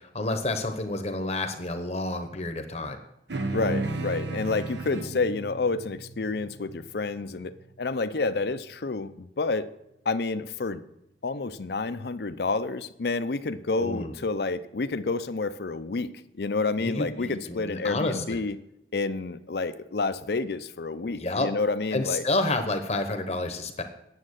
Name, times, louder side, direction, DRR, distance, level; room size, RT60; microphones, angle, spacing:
voice 1, 0.0-3.0 13.8-14.1 16.8-18.4 21.0-21.5 21.9-23.8, left 2 dB, 35° left, 7 dB, 0.9 m, -29 dB
sound 1, 3.3-8.0, right 2 dB, 80° right, 1.0 m, -34 dB
voice 2, 3.5-9.7 10.0-10.8 11.2-18.6 18.9-22.2, left 3 dB, 65° left, 12 dB, 0.6 m, -29 dB
9.6 x 7.3 x 6.4 m, 0.85 s
head